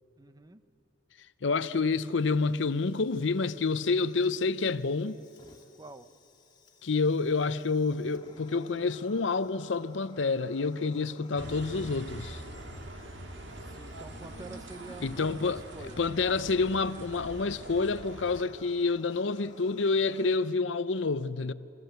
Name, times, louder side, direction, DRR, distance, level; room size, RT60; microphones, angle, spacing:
voice 1, 0.2-0.6 5.8-6.1 13.6-16.0, right 2 dB, 20° right, 0.7 m, -47 dB
voice 2, 1.4-5.2 6.8-12.4 15.0-21.5, left 4 dB, 75° left, 0.7 m, -28 dB
Fire, 1.7-20.4, left 3 dB, 25° left, 2.3 m, -55 dB
sound 1, 11.4-18.4, right 1 dB, 70° right, 1.8 m, -44 dB
29.0 x 23.0 x 8.1 m
head